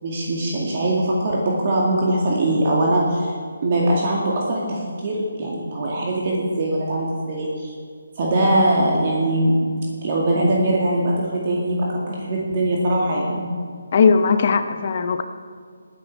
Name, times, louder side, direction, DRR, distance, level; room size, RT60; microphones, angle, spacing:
voice 1, 0.0-3.3 3.6-7.7 8.2-9.7 10.0-13.4, right 1 dB, 40° right, -3 dB, 2.1 m, -21 dB
voice 2, 13.9-15.2, left 5 dB, 40° left, 9 dB, 0.8 m, -18 dB
16.5 x 9.4 x 4.6 m, 2.1 s
figure-of-eight pair, 160°, 0 cm